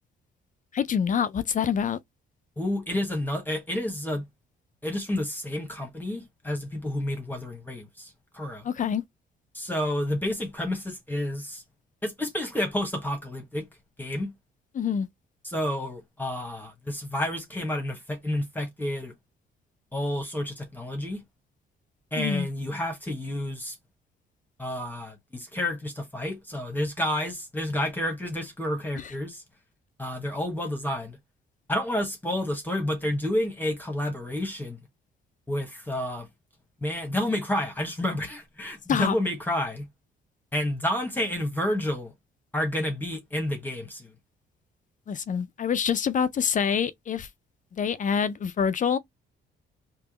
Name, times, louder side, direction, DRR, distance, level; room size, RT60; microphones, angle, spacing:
voice 1, 0.7-2.0 8.6-9.0 14.7-15.1 22.2-22.5 29.0-29.1 38.9-39.1 45.1-47.3 47.7-49.0, left 7 dB, 40° left, 0.4 m, -26 dB
voice 2, 2.6-4.2 4.8-8.6 9.5-11.6 12.0-13.7 14.0-14.3 15.4-19.1 19.9-21.2 22.1-23.7 24.6-29.4 30.0-31.2 31.7-34.8 35.5-36.3 36.8-39.9 40.5-42.1 42.5-44.1, left 1 dB, 10° left, 1.2 m, -30 dB
3.5 x 2.9 x 2.9 m
cardioid pair, 90°, 20 cm